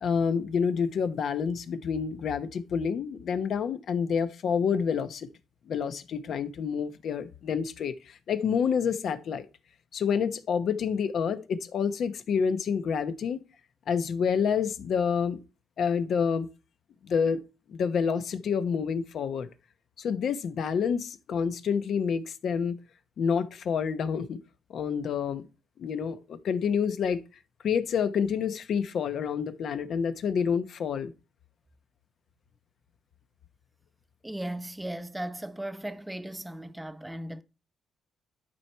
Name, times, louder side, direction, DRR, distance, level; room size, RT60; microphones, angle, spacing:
voice 1, 0.0-5.3 5.7-9.5 9.9-13.4 13.9-15.4 15.8-16.5 17.0-17.4 17.7-19.5 20.0-22.7 23.2-24.4 24.7-25.5 25.8-27.2 27.6-31.1, left 6 dB, 65° left, 1.0 m, -28 dB
voice 2, 34.2-37.4, right 1 dB, 10° right, 0.8 m, -37 dB
11.5 x 4.7 x 4.5 m
cardioid pair, 90°, 0 cm